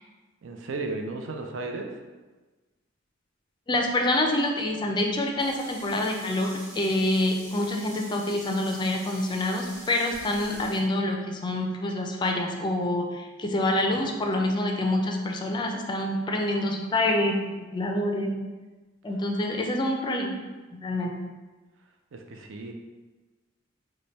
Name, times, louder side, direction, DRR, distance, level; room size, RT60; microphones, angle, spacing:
voice 1, 0.4-1.9 22.1-22.7, right 3 dB, 80° right, 3 dB, 0.5 m, -34 dB
voice 2, 3.7-18.4 19.0-21.2, left 1 dB, 25° left, 2 dB, 0.4 m, -27 dB
Sink (filling or washing), 5.4-10.8, right 1 dB, 35° right, 1.1 m, -45 dB
3.2 x 2.2 x 4.0 m, 1.2 s
head